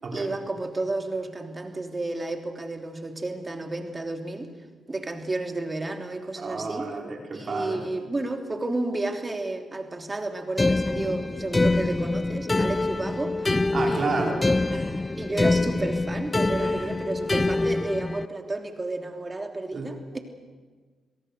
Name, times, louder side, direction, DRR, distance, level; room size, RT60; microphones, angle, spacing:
voice 1, 0.1-4.5 4.9-6.9 7.3-14.4 15.2-20.2, right 2 dB, 30° right, 4 dB, 3.2 m, -32 dB
voice 2, 6.4-7.8 13.7-14.4 14.7-15.0 16.6-16.9 19.7-19.9, right 3 dB, 55° right, 1 dB, 4.7 m, -31 dB
sound 1, 10.6-18.3, left 2 dB, 25° left, 0.6 m, -25 dB
27.5 x 17.5 x 6.8 m, 1.5 s
supercardioid pair, 50°, 0 cm